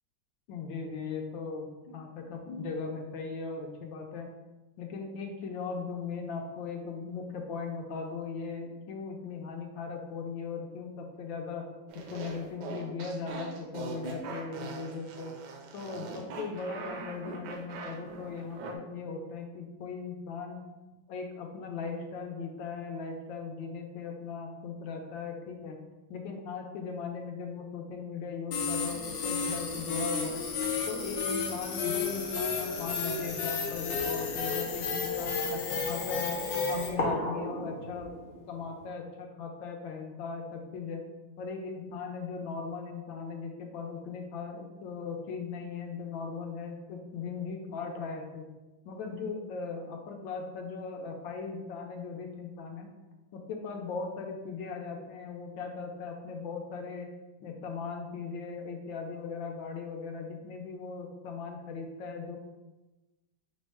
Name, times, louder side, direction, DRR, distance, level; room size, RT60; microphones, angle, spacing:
voice 1, 0.5-4.3 4.8-11.6 12.1-15.3 15.7-20.6 21.1-25.8 26.1-30.4 30.9-38.1 38.5-41.0 41.4-48.5 48.8-52.9 53.3-57.1 57.4-62.4, left 5 dB, 85° left, 2 dB, 1.4 m, -38 dB
sound 1, 11.9-18.7, right 4 dB, 75° right, 1.1 m, -42 dB
sound 2, 28.5-36.9, left 5 dB, 70° left, 1.0 m, -32 dB
sound 3, 33.8-38.9, left 1 dB, 50° left, 0.7 m, -38 dB
4.7 x 2.1 x 4.6 m, 1.1 s
omnidirectional pair, 2.1 m